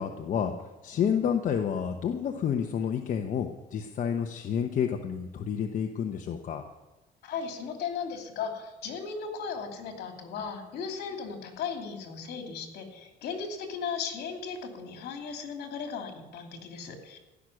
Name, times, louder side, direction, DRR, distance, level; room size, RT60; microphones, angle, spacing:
voice 1, 0.0-6.6, left 8 dB, 50° left, 4 dB, 1.0 m, -30 dB
voice 2, 7.2-17.2, left 6 dB, 70° left, 3 dB, 2.9 m, -36 dB
15.0 x 6.4 x 9.8 m, 1.1 s
cardioid pair, 110°, 17 cm